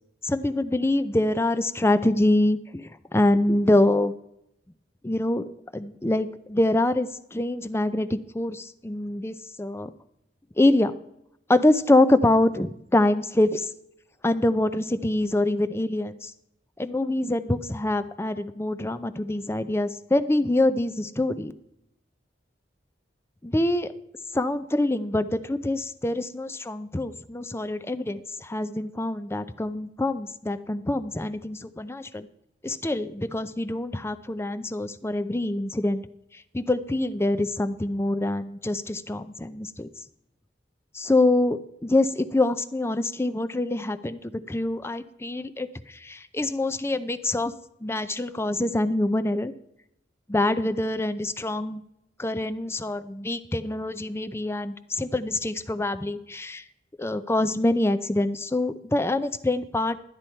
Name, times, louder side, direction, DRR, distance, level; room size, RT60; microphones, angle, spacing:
voice 1, 0.2-4.1 5.0-5.4 5.7-9.9 10.6-11.0 11.5-13.7 14.2-16.3 16.8-21.5 23.4-23.9 24.3-32.3 32.6-36.0 36.3-39.9 40.9-47.5 47.8-49.5 50.3-51.8 52.2-56.6 57.0-60.0, left 1 dB, 15° left, 11 dB, 0.5 m, -25 dB
12.0 x 9.9 x 4.4 m, 0.80 s
head